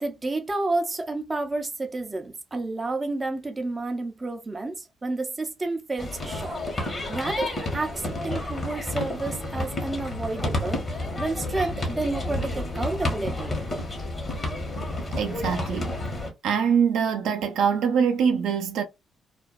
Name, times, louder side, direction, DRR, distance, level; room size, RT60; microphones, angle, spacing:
voice 1, 0.0-6.6 7.1-10.8 11.2-13.6, right 2 dB, 20° right, 0.5 m, -30 dB
sound 1, 6.0-16.3, left 1 dB, 35° left, 1.2 m, -30 dB
voice 2, 15.2-16.0 16.4-18.8, right 7 dB, 80° right, 0.6 m, -23 dB
2.5 x 2.2 x 2.3 m
cardioid pair, 90°, 0 cm